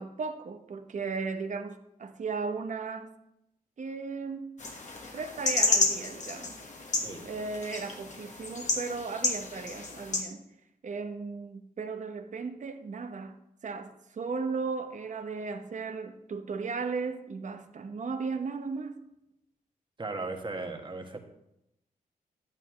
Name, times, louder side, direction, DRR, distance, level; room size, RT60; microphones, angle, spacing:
voice 1, 0.0-3.1 3.8-4.5 5.1-6.6 7.2-10.4 10.8-13.3 13.6-19.0, right 4 dB, 55° right, 8 dB, 0.8 m, -36 dB
sound 1, 4.6-10.2, left 3 dB, 50° left, 1.5 m, -31 dB
voice 2, 20.0-21.3, right 3 dB, 30° right, 3 dB, 1.5 m, -37 dB
11.5 x 9.2 x 3.1 m, 0.85 s
cardioid pair, 85°, 15 cm